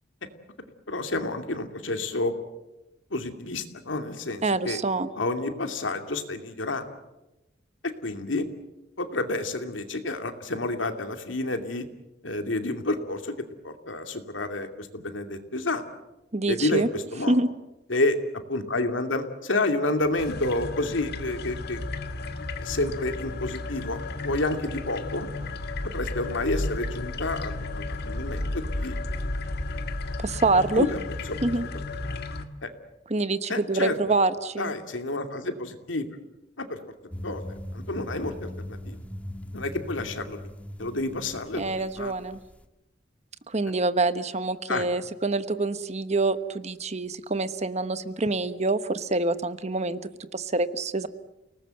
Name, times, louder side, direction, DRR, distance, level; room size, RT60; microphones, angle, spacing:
voice 1, 0.9-2.3 3.1-4.8 5.2-6.9 8.0-8.5 9.0-11.8 12.2-13.3 13.6-15.8 16.5-17.4 17.9-18.2 18.5-21.8 22.6-25.3 25.9-28.9 30.7-31.0 31.3-31.4 32.6-32.7 33.5-33.9 34.6-36.1 36.6-36.8 37.2-37.4 37.7-39.0 39.5-40.4 40.8-42.1 44.7-44.9, left 2 dB, 90° left, 6 dB, 2.6 m, -29 dB
voice 2, 4.4-5.1 16.3-16.9 17.3-17.5 30.2-30.9 31.4-31.7 33.1-34.7 41.5-42.4 43.5-50.0 50.3-51.1, right 3 dB, 35° right, 12 dB, 1.1 m, -26 dB
sound 1, 20.2-32.4, left 2 dB, 60° left, 1.8 m, -33 dB
sound 2, 37.1-42.6, left 1 dB, 10° left, 1.4 m, -40 dB
29.5 x 19.5 x 7.8 m, 0.98 s
head